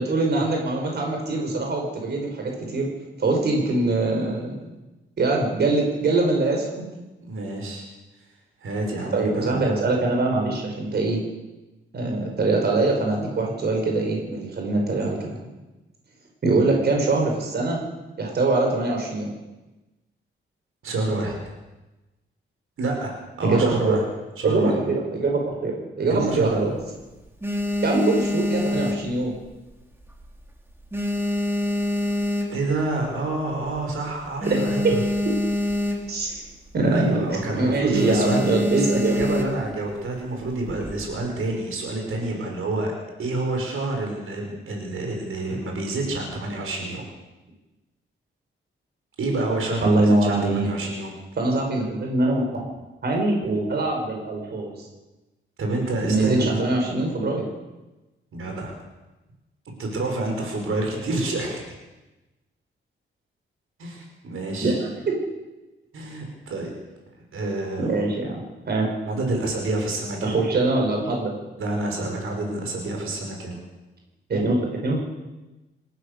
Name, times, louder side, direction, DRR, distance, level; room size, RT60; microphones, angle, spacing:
voice 1, 0.0-2.9 3.2-4.8 5.2-6.8 9.1-11.2 11.9-15.4 16.4-17.8 18.2-19.3 23.4-24.0 24.4-26.7 27.8-29.3 34.5-34.6 36.1-36.4 36.7-39.1 49.8-50.7 51.4-52.6 53.0-54.7 56.1-57.4 64.6-64.8 65.1-65.2 67.8-68.9 70.2-71.3 74.3-75.0, right 2 dB, 50° right, 1 dB, 5.5 m, -23 dB
voice 2, 7.2-7.8 8.6-9.6 20.8-21.4 22.8-24.0 24.4-24.8 26.1-26.7 32.5-35.0 36.9-38.4 38.7-42.9 43.2-47.0 49.2-51.1 55.6-56.6 58.3-58.7 59.7-61.6 63.8-64.7 65.9-66.7 67.3-68.1 69.1-70.4 71.6-73.6, right 2 dB, 85° right, 1 dB, 5.6 m, -28 dB
sound 1, 26.1-26.8 27.2-29.7 30.0-30.4 30.7-32.9 33.4-33.5 33.7-33.8 34.1-36.3 36.6-36.9 37.2-37.5 37.9-39.7 40.5-41.0, left 1 dB, 10° right, 3.0 m, -26 dB
27.0 x 15.0 x 6.9 m, 1.1 s
wide cardioid pair, 160°, 21 cm